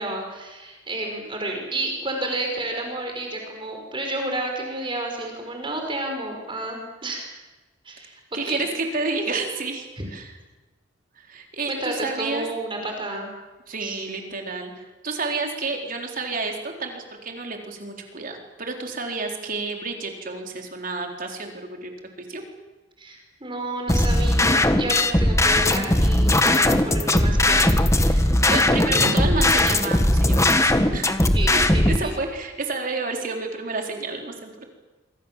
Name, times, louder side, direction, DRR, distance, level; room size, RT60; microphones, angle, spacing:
voice 1, 0.0-7.3 7.8-8.2 8.5-8.7 10.0-10.1 11.7-13.3 13.8-14.0 23.0-28.3 28.9-29.1 31.3-32.1, right 2 dB, 25° right, 2 dB, 5.2 m, -31 dB
voice 2, 8.3-10.3 11.2-12.4 13.7-21.9 22.3-22.4 28.1-31.1 31.5-34.7, right 3 dB, 45° right, 2 dB, 4.2 m, -30 dB
sound 1, 23.9-32.0, left 1 dB, 15° left, 1.5 m, -19 dB
26.0 x 25.5 x 7.6 m, 1.2 s
head